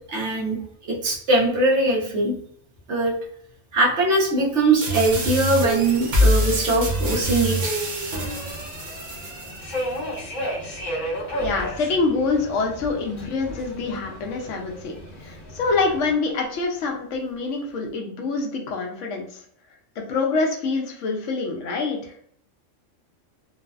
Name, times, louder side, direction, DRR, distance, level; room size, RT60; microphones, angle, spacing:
voice 1, 0.1-0.6 0.8-2.3 2.9-3.2 3.7-7.7, right 2 dB, 65° right, -1 dB, 1.0 m, -21 dB
sound 1, 4.8-9.8, equal, 45° right, 0.7 m, -25 dB
Subway metro underground, 5.6-16.1, equal, 45° left, 0.8 m, -35 dB
voice 2, 11.4-14.9 15.2-19.4 20.0-22.1, left 3 dB, 75° left, 1 dB, 0.9 m, -25 dB
3.1 x 2.0 x 2.3 m, 0.64 s
omnidirectional pair, 1.3 m